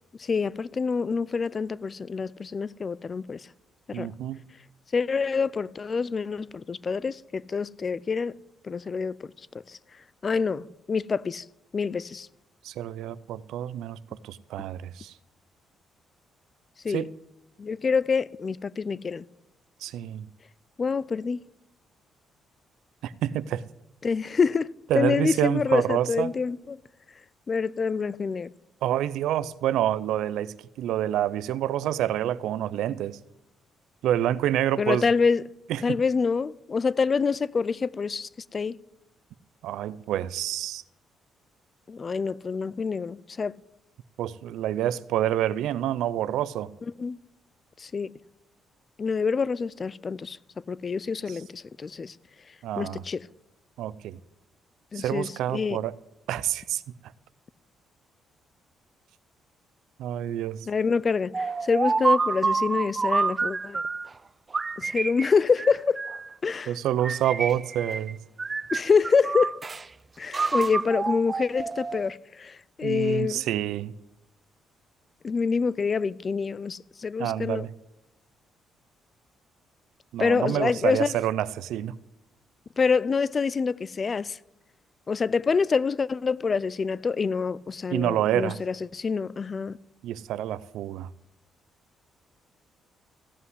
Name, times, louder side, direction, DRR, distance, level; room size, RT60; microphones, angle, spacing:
voice 1, 0.2-3.4 3.9-4.1 4.9-8.3 8.6-9.2 9.7-9.8 10.2-11.4 11.7-12.3 16.8-17.0 17.6-19.3 20.8-21.4 24.0-26.8 27.5-28.5 34.8-35.4 35.8-38.8 41.9-43.6 47.0-47.2 47.8-48.2 49.0-50.4 50.7-52.1 52.8-53.3 54.9-55.8 60.7-63.8 64.8-66.0 66.4-66.8 68.7-69.6 70.2-73.4 75.2-77.7 80.2-81.2 82.8-84.4 85.1-89.8, left 5 dB, 40° left, 0.4 m, -26 dB
voice 2, 3.9-4.4 12.6-14.0 14.2-15.1 16.9-17.1 19.8-20.2 23.0-23.6 24.9-26.3 28.8-33.2 34.0-35.1 35.7-35.8 39.6-40.8 44.2-46.7 51.3-51.4 52.6-53.0 53.8-54.2 54.9-56.0 56.3-56.8 60.0-60.7 66.7-68.2 72.8-73.9 77.2-77.7 80.1-81.9 87.9-88.6 90.0-91.1, right 11 dB, 85° right, 0.5 m, -27 dB
sound 1, 61.3-64.1 64.5-66.3 67.0-68.1 68.4-69.8 70.3-72.1, right 4 dB, 30° right, 0.4 m, -28 dB
15.0 x 5.7 x 9.5 m
cardioid pair, 90°, 0 cm